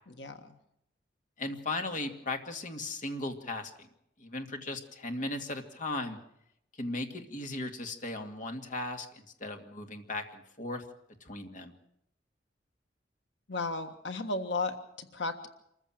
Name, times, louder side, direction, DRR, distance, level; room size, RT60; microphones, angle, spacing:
voice 1, 0.2-0.5 13.5-15.5, left 3 dB, 85° left, 7 dB, 1.6 m, -34 dB
voice 2, 1.4-3.9 4.2-6.2 6.8-10.8 11.2-11.7, left 2 dB, 45° left, 4 dB, 2.3 m, -37 dB
26.5 x 15.0 x 7.6 m, 0.79 s
head